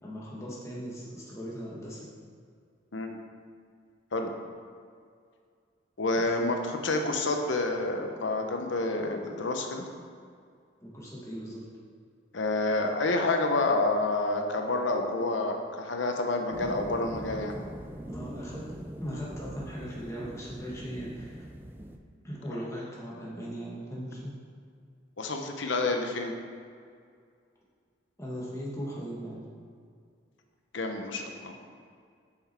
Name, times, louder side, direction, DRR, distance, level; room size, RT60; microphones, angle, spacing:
voice 1, 0.0-2.1 6.1-6.3 10.8-11.6 18.0-18.7 19.0-21.4 22.2-24.3 28.2-29.4, equal, 15° left, -6 dB, 1.7 m, -38 dB
voice 2, 6.0-9.9 12.3-17.5 25.2-26.3 30.7-31.5, left 2 dB, 75° left, 4 dB, 0.9 m, -28 dB
sound 1, 16.5-22.0, right 1 dB, 10° right, 0.4 m, -42 dB
7.7 x 6.0 x 4.4 m, 2.2 s
head